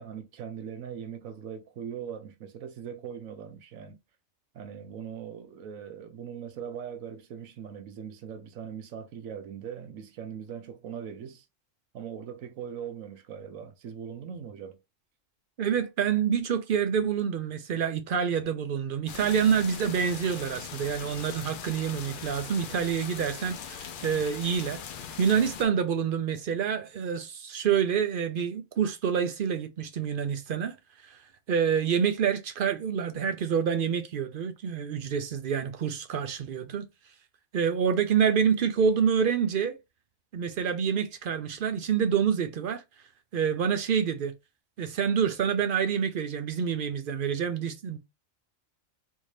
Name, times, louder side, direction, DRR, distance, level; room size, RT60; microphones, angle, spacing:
voice 1, 0.0-4.0 4.5-11.4 11.9-14.8, right 8 dB, 85° right, 1.1 m, -40 dB
voice 2, 15.6-24.8 25.2-30.8 31.0-31.2 31.5-36.9 37.5-39.8 40.3-42.8 43.3-44.3 44.8-48.0, right 7 dB, 60° right, 0.5 m, -27 dB
sound 1, 19.1-25.7, left 7 dB, 70° left, 0.5 m, -40 dB
3.6 x 2.7 x 3.1 m
omnidirectional pair, 1.4 m